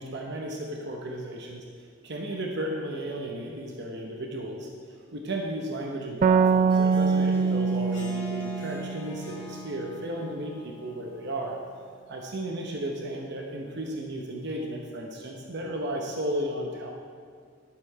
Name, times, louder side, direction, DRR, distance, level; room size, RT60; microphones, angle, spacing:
voice 1, 0.0-1.6 2.0-4.7 5.1-11.6 12.1-16.9, right 1 dB, 60° right, 0 dB, 1.0 m, -34 dB
sound 1, 6.2-9.7, right 5 dB, 40° right, 0.4 m, -24 dB
Harp, 6.5-12.0, left 1 dB, 25° left, 1.9 m, -45 dB
12.0 x 7.0 x 4.7 m, 2.1 s
head